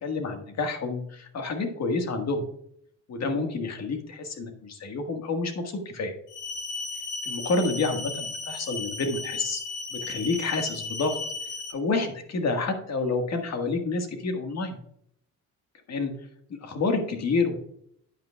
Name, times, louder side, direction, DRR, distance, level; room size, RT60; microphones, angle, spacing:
voice 1, 0.0-2.4 3.1-6.1 7.2-9.6 9.9-11.2 11.7-14.8 15.9-16.1 16.6-17.6, left 3 dB, 60° left, 5 dB, 1.7 m, -28 dB
sound 1, 6.3-11.7, left 3 dB, 85° left, 1.6 m, -35 dB
9.3 x 9.0 x 2.3 m, 0.69 s
cardioid pair, 90°, 30 cm